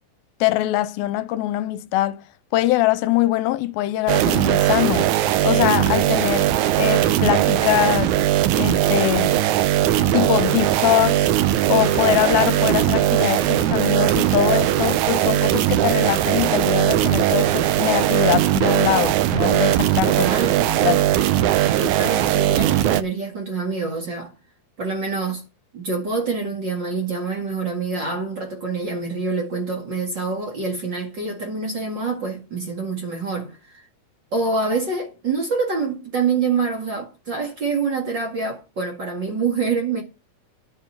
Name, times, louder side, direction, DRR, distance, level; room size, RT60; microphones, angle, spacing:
voice 1, 0.4-2.2 2.5-5.1 5.4-8.1 8.6-9.4 10.0-11.3 11.7-20.3 20.8-21.0, left 15 dB, 80° left, 2.4 m, -22 dB
sound 1, 4.1-23.0, right 12 dB, 80° right, 1.7 m, -19 dB
voice 2, 20.0-20.7 21.8-24.3 24.8-25.4 25.7-33.8 34.3-40.0, right 4 dB, 40° right, 2.0 m, -26 dB
10.5 x 7.1 x 5.6 m
omnidirectional pair, 4.3 m